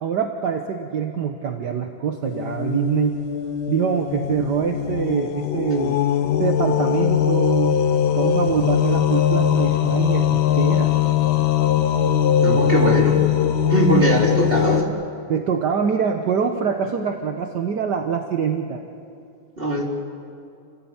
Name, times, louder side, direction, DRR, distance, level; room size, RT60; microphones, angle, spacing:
voice 1, 0.0-3.2 3.7-6.0 6.4-7.8 8.2-10.9 14.0-14.1 15.3-18.8, right 7 dB, 60° right, 4 dB, 1.6 m, -24 dB
sound 1, 2.2-14.8, left 9 dB, 90° left, 1.9 m, -20 dB
voice 2, 12.4-13.2 13.7-14.9 19.6-19.8, right 1 dB, 25° right, -2 dB, 3.7 m, -20 dB
29.5 x 15.5 x 8.7 m, 2.5 s
omnidirectional pair, 2.2 m